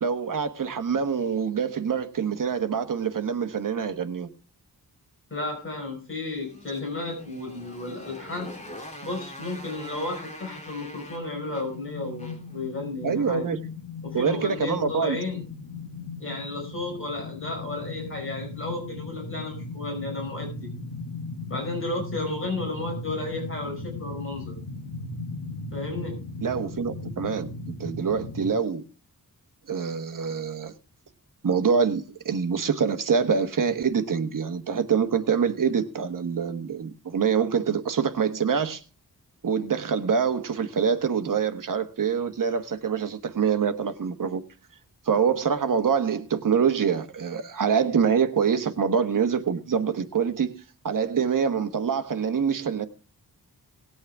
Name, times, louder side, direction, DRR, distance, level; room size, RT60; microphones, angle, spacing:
voice 1, 0.0-4.3 13.0-13.6 14.1-15.2 26.4-28.8 29.7-30.7 31.4-38.8 39.4-44.4 45.0-52.9, right 6 dB, 60° right, 1.2 m, -25 dB
voice 2, 5.3-8.5 9.0-13.5 14.0-15.4 16.2-20.7 21.5-24.5 25.7-26.2, left 2 dB, 35° left, 5.2 m, -33 dB
Motorcycle, 6.3-12.6, left 1 dB, 20° left, 2.9 m, -44 dB
sound 1, 11.3-28.5, left 3 dB, 75° left, 1.6 m, -37 dB
19.0 x 8.5 x 3.5 m
wide cardioid pair, 150°, 36 cm